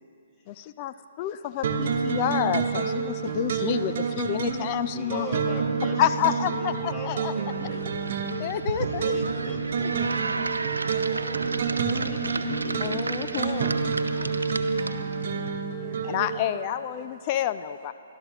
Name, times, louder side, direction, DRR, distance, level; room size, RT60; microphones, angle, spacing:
voice 1, 0.5-5.3 6.0-7.3 8.4-9.2 9.8-9.9 12.8-13.8 16.0-17.9, left 11 dB, 35° left, 13 dB, 0.4 m, -29 dB
sound 1, 1.6-16.4, right 5 dB, 55° right, 1.1 m, -29 dB
voice 2, 4.9-7.9 8.9-10.2 12.1-13.0, left 2 dB, 20° left, -1 dB, 1.9 m, -40 dB
sound 2, 7.5-15.2, right 3 dB, 80° right, 0.6 m, -33 dB
voice 3, 8.7-9.6 9.9-11.1 15.7-17.2, right 7 dB, 15° right, -3 dB, 1.4 m, -46 dB
25.5 x 12.0 x 2.9 m, 2.6 s
figure-of-eight pair, 130°, 0 cm